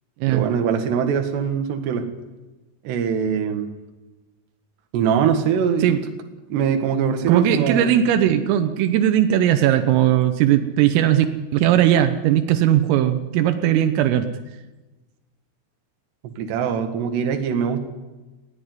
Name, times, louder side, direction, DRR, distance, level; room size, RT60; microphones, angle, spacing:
voice 1, 0.3-2.1 2.9-3.7 4.9-5.9 6.5-8.0 16.4-17.8, right 7 dB, 65° right, 5 dB, 3.7 m, -22 dB
voice 2, 7.3-11.3 11.5-14.3, right 11 dB, 85° right, 8 dB, 3.7 m, -18 dB
20.0 x 16.0 x 9.5 m, 1.1 s
omnidirectional pair, 5.8 m